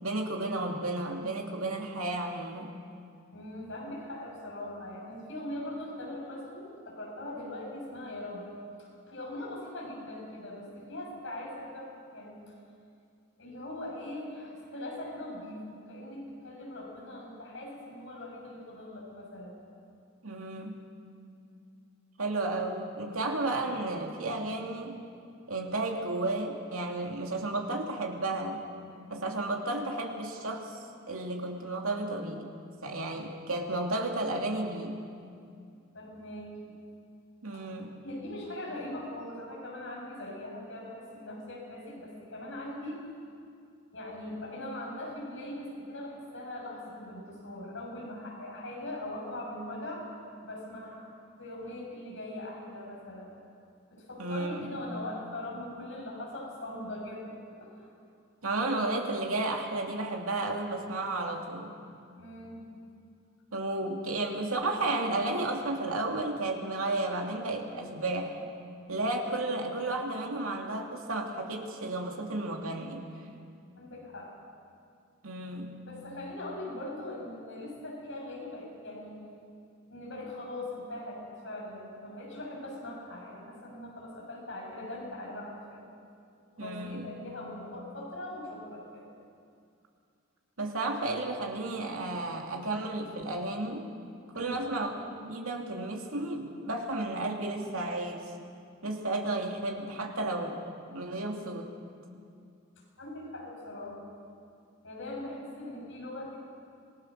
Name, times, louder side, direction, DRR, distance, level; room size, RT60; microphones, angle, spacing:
voice 1, 0.0-2.7 20.2-20.8 22.2-25.0 25.5-28.6 29.1-32.5 32.8-35.0 37.4-38.0 54.2-54.7 58.4-61.7 63.5-68.4 68.9-73.1 75.2-75.7 86.6-87.1 90.6-93.9 94.3-98.3 98.8-100.6 100.9-101.7, right 2 dB, 85° right, 1 dB, 2.6 m, -33 dB
voice 2, 3.3-8.4 9.1-12.5 13.4-15.6 15.9-19.5 35.9-36.7 37.5-37.6 38.0-43.0 43.9-50.1 50.4-51.1 51.4-53.3 53.9-57.3 57.6-57.9 62.2-62.6 73.8-74.3 75.9-79.2 79.9-85.8 86.3-89.0 94.3-94.8 103.0-104.0 104.8-106.4, left 1 dB, 65° left, -3 dB, 7.4 m, -41 dB
26.5 x 20.0 x 6.5 m, 2.4 s
head